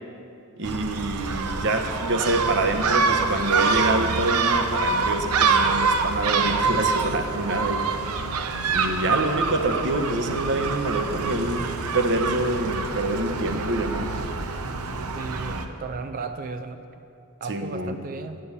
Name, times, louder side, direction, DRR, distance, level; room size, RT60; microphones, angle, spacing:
voice 1, 0.6-7.9 8.7-14.1 17.5-18.0, right 2 dB, 55° right, 6 dB, 0.9 m, -26 dB
Gull seagull, 0.6-15.6, right 4 dB, 85° right, 0.7 m, -26 dB
voice 2, 15.1-16.8 17.4-18.4, right 4 dB, 40° right, 9 dB, 0.4 m, -34 dB
10.0 x 6.9 x 8.4 m, 2.7 s
head